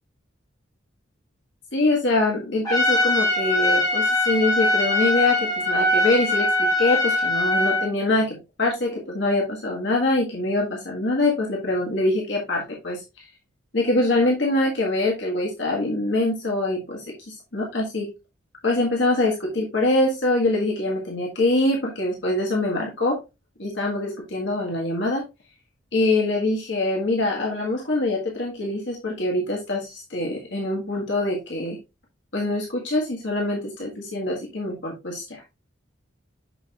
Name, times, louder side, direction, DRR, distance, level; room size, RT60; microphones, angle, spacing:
voice 1, 1.7-5.4 5.7-13.0 13.7-18.1 18.6-23.2 23.6-25.2 25.9-31.8 32.3-35.4, left 2 dB, 60° left, -1 dB, 1.6 m, -24 dB
Trumpet, 2.7-7.9, left 1 dB, 20° left, 3.7 m, -22 dB
6.9 x 6.4 x 2.4 m, 0.25 s
head